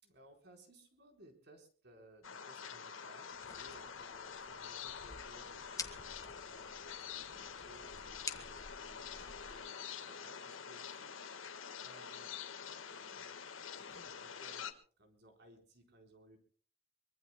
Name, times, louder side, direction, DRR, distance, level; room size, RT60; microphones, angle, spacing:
voice 1, 0.0-12.3 12.6-16.4, right 1 dB, 55° right, 4 dB, 4.2 m, -62 dB
sound 1, 2.2-14.7, left 7 dB, 90° left, 1.5 m, -47 dB
sound 2, 3.3-9.6, left 4 dB, 15° left, 1.5 m, -50 dB
24.0 x 23.5 x 2.2 m, 0.42 s
head